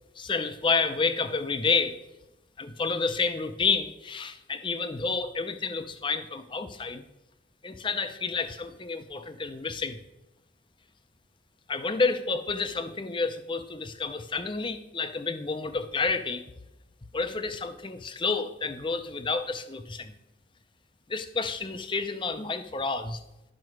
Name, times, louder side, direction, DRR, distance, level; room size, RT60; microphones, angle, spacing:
voice 1, 0.2-2.0 2.6-7.0 7.6-10.0 11.7-16.4 17.1-20.1 21.1-23.2, left 4 dB, 25° left, 10 dB, 0.6 m, -29 dB
10.5 x 6.0 x 4.6 m, 0.94 s
head